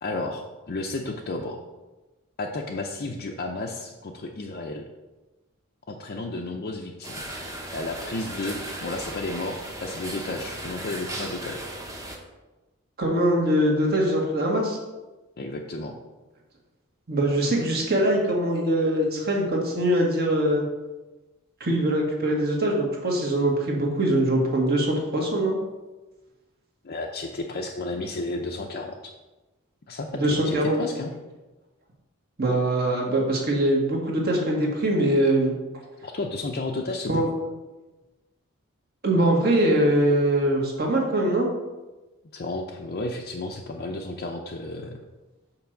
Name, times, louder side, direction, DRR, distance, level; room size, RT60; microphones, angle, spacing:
voice 1, 0.0-1.6 2.4-4.8 5.9-7.3 7.7-11.6 15.4-16.0 26.8-29.1 29.9-31.1 36.0-37.2 42.3-45.0, left 2 dB, 45° left, 0 dB, 0.6 m, -32 dB
sound 1, 7.0-12.2, right 1 dB, 15° right, 0.9 m, -36 dB
voice 2, 13.0-14.8 17.1-20.6 21.6-25.6 30.1-30.8 32.4-35.5 37.1-37.3 39.0-41.5, right 1 dB, 45° right, -1 dB, 1.7 m, -22 dB
5.7 x 4.5 x 6.4 m, 1.1 s
head